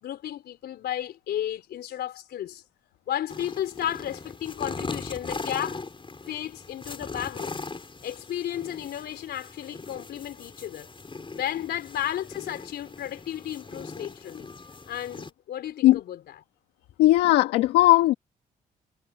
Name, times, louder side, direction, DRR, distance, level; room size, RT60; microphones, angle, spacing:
voice 1, 0.0-2.6 3.1-5.8 6.2-7.6 8.0-10.9 11.3-14.5 14.9-16.4, left 11 dB, 75° left, 3.8 m, -33 dB
sound 1, 3.3-15.3, left 3 dB, 30° left, 4.9 m, -39 dB
voice 2, 17.0-18.1, left 16 dB, 90° left, 1.8 m, -18 dB
supercardioid pair, 55°, 17 cm